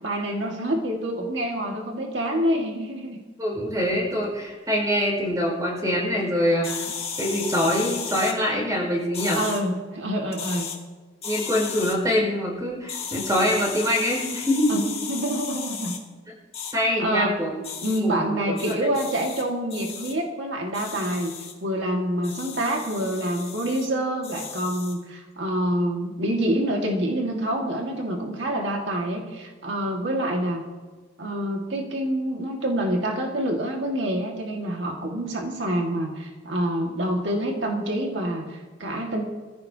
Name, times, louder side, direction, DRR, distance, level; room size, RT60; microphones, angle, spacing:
voice 1, 0.0-3.2 9.4-10.7 14.7-16.0 17.0-17.3 17.8-21.3 21.6-30.6 31.2-39.2, right 1 dB, 80° right, 0 dB, 1.9 m, -27 dB
voice 2, 3.4-6.9 7.2-9.4 11.2-14.8 16.7-17.5 17.9-18.3 18.7-18.8, equal, 20° right, -2 dB, 5.1 m, -24 dB
sound 1, 6.6-8.4 9.1-9.6 10.3-10.8 11.2-12.0 12.9-16.0 16.5-16.7 17.6-18.0 18.6-19.4 19.7-20.1 20.7-21.5 22.2-23.9 24.2-25.0, left 6 dB, 35° left, 2.2 m, -35 dB
21.5 x 15.0 x 2.8 m, 1.3 s
head